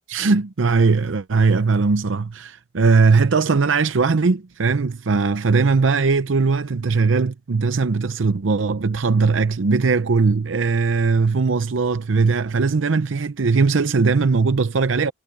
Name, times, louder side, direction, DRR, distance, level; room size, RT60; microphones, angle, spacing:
voice 1, 0.1-15.1, right 4 dB, 75° right, 0.6 m, -19 dB
head